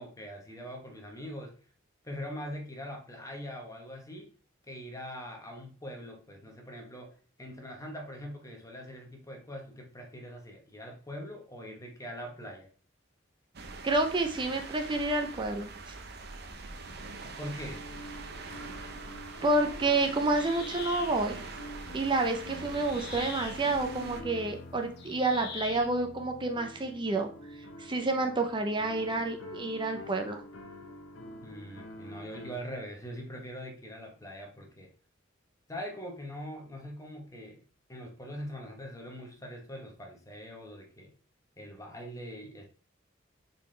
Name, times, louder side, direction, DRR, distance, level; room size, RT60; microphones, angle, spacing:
voice 1, 0.0-1.5 2.0-4.3 4.7-7.1 7.4-12.7 17.2-17.9 31.4-34.9 35.7-37.6 37.9-41.1 41.6-42.7, equal, 15° left, 2 dB, 1.1 m, -42 dB
sound 1, 13.5-24.2, right 3 dB, 55° right, 0.8 m, -43 dB
voice 2, 13.8-15.7 19.4-21.4 21.9-27.3 27.8-30.4, right 2 dB, 25° right, 4 dB, 0.6 m, -29 dB
sound 2, 17.7-32.5, left 1 dB, 85° left, 1.1 m, -47 dB
sound 3, 20.3-25.9, left 6 dB, 55° left, 0.9 m, -45 dB
6.8 x 4.3 x 3.3 m, 0.39 s
head